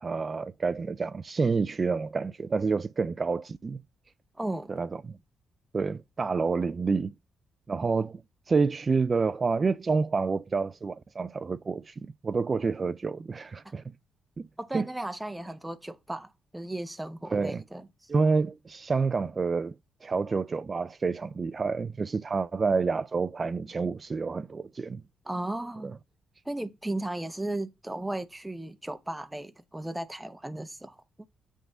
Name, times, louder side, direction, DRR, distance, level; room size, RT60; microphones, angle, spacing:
voice 1, 0.0-3.8 4.7-4.9 5.7-7.1 7.7-8.2 8.5-13.8 14.4-14.5 14.7-14.9 17.3-17.6 18.1-19.7 20.0-25.0, right 4 dB, 40° right, 0.4 m, -28 dB
voice 2, 4.4-4.8 13.6-13.7 14.6-18.1 25.2-25.9 26.4-31.3, right 1 dB, 10° right, 0.8 m, -36 dB
7.8 x 3.7 x 5.3 m
cardioid pair, 70°, 0 cm